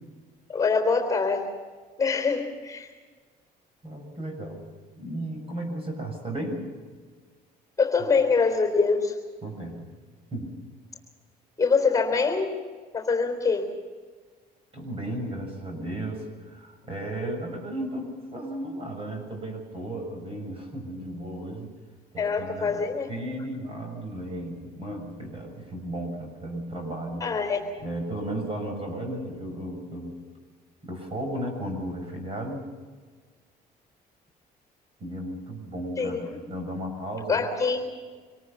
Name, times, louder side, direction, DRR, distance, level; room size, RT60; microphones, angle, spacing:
voice 1, 0.5-1.5 2.0-2.9 7.8-9.1 11.6-12.6 12.9-13.7 22.2-23.1 27.2-27.6 36.0-36.4 37.3-37.8, left 4 dB, 20° left, 4 dB, 3.8 m, -24 dB
voice 2, 3.8-4.6 5.0-6.6 9.4-9.9 10.3-10.5 14.7-21.7 22.1-22.8 23.1-27.2 27.8-30.1 30.8-32.7 35.0-37.5, right 1 dB, 35° right, 3 dB, 7.1 m, -34 dB
25.5 x 18.5 x 7.0 m, 1.5 s
cardioid pair, 110°, 17 cm